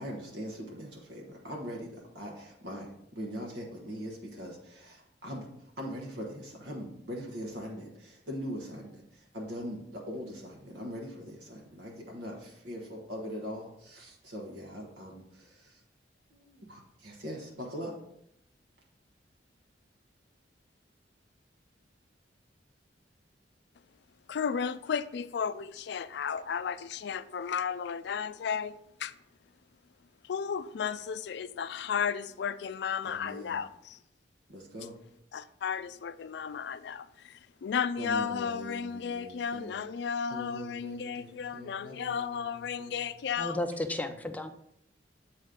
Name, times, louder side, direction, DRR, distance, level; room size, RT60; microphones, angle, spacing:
voice 1, 0.0-5.5 5.8-15.8 16.3-17.9 33.0-33.6 34.5-34.9 38.0-39.8 40.3-43.0 44.1-44.2, equal, 75° right, 1.2 m, -42 dB
voice 2, 24.3-29.1 30.2-34.0 35.3-43.6, left 7 dB, 65° left, 0.4 m, -34 dB
voice 3, 43.4-44.5, left 1 dB, 10° left, 0.5 m, -33 dB
7.9 x 4.2 x 3.8 m
head